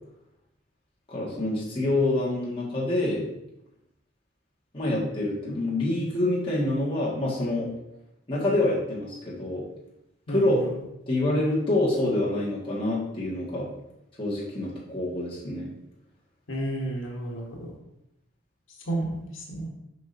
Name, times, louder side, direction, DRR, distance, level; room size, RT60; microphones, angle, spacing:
voice 1, 1.1-3.2 4.7-7.7 8.3-9.6 10.3-10.6 11.1-13.7 14.2-15.7, left 1 dB, 25° left, -7 dB, 1.9 m, -26 dB
voice 2, 16.5-17.7 18.9-19.7, right 1 dB, 85° left, -1 dB, 1.3 m, -31 dB
7.6 x 5.1 x 2.8 m, 0.84 s
head